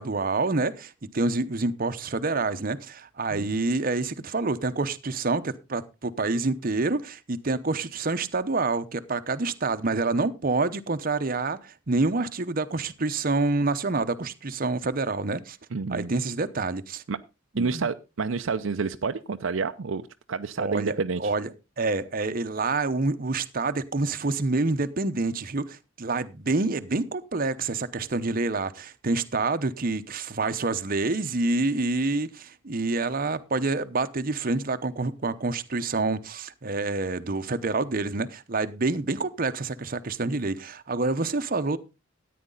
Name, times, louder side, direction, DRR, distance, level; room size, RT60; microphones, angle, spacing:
voice 1, 0.0-15.6 15.9-17.0 17.5-17.9 20.6-21.5 21.8-41.8, right 3 dB, 45° right, 0.8 m, -27 dB
voice 2, 15.7-16.1 17.1-17.2 17.6-21.2, right 4 dB, 70° right, 0.5 m, -29 dB
14.0 x 9.4 x 3.8 m
head